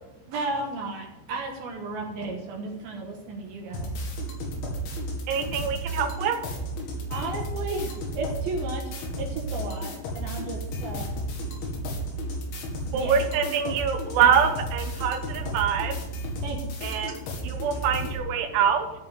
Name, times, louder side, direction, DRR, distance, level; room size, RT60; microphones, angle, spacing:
voice 1, 0.3-3.9 7.1-11.1 12.9-13.2 16.4-16.8, right 3 dB, 65° right, 1 dB, 2.7 m, -34 dB
sound 1, 3.7-18.2, right 1 dB, 80° left, 4.5 m, -33 dB
voice 2, 4.0-6.0 6.8-7.0 10.0-13.0 14.1-14.2 15.0-17.9 18.4-18.6, left 1 dB, 30° left, -6 dB, 2.3 m, -49 dB
voice 3, 5.3-6.4 12.9-16.0 16.8-17.1 17.4-18.9, right 7 dB, 85° right, 4 dB, 3.4 m, -24 dB
13.5 x 5.7 x 7.8 m, 0.98 s
omnidirectional pair, 5.3 m